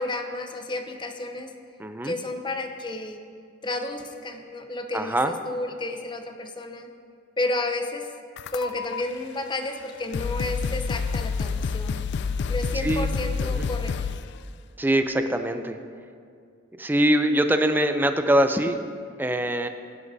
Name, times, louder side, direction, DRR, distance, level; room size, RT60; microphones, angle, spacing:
voice 1, 0.0-1.5 2.0-3.2 3.6-6.9 7.4-8.1 8.5-12.1 12.5-13.9, left 2 dB, 25° left, 6 dB, 0.7 m, -31 dB
voice 2, 1.8-2.2 4.9-5.3 12.7-13.1 13.5-13.7 14.8-15.8 16.8-18.8 19.2-19.7, right 1 dB, 10° right, 7 dB, 0.4 m, -23 dB
sound 1, 8.4-9.0 9.8-9.9 10.1-14.3, left 5 dB, 55° left, 0.3 m, -28 dB
16.0 x 11.0 x 2.7 m, 2.3 s
head